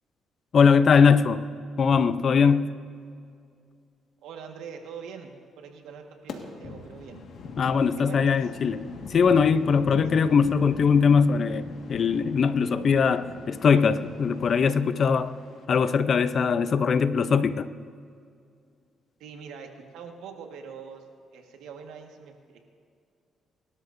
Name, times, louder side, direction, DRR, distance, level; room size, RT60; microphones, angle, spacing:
voice 1, 0.5-1.5 1.8-2.7 7.6-8.8 9.1-15.3 15.7-17.7, left 6 dB, 50° left, 12 dB, 0.6 m, -21 dB
voice 2, 4.2-5.3 5.6-7.2 8.0-8.5 10.1-10.3 19.2-21.0 21.3-22.7, right 6 dB, 90° right, 3 dB, 1.6 m, -43 dB
sound 1, 6.3-15.6, left 4 dB, 70° left, 1.7 m, -41 dB
25.0 x 12.5 x 2.7 m, 2.3 s
cardioid pair, 90°, 0 cm